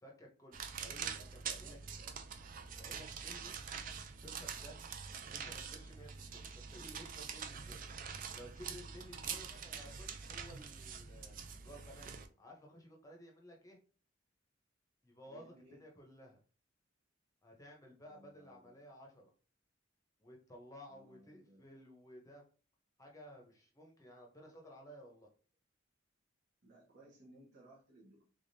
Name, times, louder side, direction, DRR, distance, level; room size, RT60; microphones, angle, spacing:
voice 1, 0.0-1.8 2.7-3.6 4.2-4.8 5.3-7.8 8.3-11.3 11.6-13.8 15.0-16.4 17.4-19.3 20.2-22.4 23.0-25.3, equal, 15° left, 0 dB, 0.8 m, -55 dB
sound 1, 0.5-12.3, right 6 dB, 45° right, 0.4 m, -45 dB
voice 2, 0.9-2.2 15.3-15.8 18.1-18.9 20.9-21.7 26.6-28.3, right 1 dB, 60° right, -6 dB, 1.1 m, -62 dB
3.5 x 3.5 x 2.7 m, 0.39 s
head